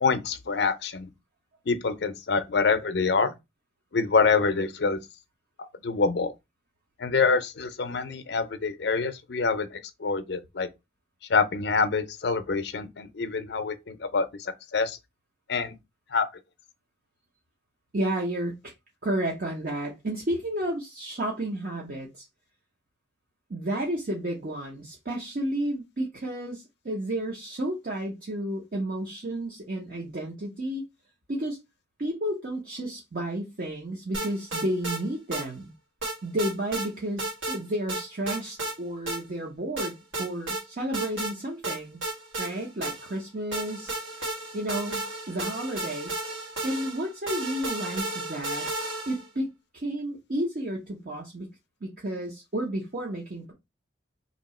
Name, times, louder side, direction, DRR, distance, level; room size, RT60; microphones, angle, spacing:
voice 1, 0.0-1.1 1.7-3.3 3.9-5.0 5.6-6.3 7.0-10.7 11.3-15.0 15.5-15.7 16.1-16.3, left 4 dB, 60° left, 0.5 m, -26 dB
voice 2, 17.9-18.7 19.0-22.2 23.5-30.8 31.3-31.6 32.0-35.7 36.2-42.0 42.4-43.9 44.5-46.2 46.6-48.7 49.1-49.5 49.7-51.5 51.8-53.5, right 1 dB, 50° right, 0.7 m, -32 dB
sound 1, 34.1-35.0 35.3-35.5 36.0-36.9 37.2-37.6 37.9-38.8 39.1-39.2 39.8-40.6 40.9-41.3 41.6-43.2 43.5-49.3, right 2 dB, 80° right, 1.5 m, -33 dB
2.9 x 2.7 x 4.1 m
head